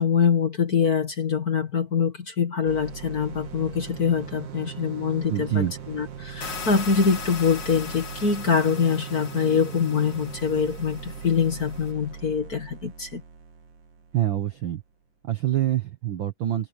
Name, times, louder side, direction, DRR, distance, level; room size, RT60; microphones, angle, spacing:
voice 1, 0.0-13.2, left 6 dB, 40° left, 1.6 m, -24 dB
sound 1, 2.7-14.5, right 7 dB, 70° right, 4.5 m, -40 dB
voice 2, 5.3-5.7 14.1-14.8 15.2-16.7, right 12 dB, 85° right, 1.0 m, -25 dB
sound 2, 6.4-11.9, left 5 dB, 65° left, 4.3 m, -39 dB
open air
omnidirectional pair, 3.7 m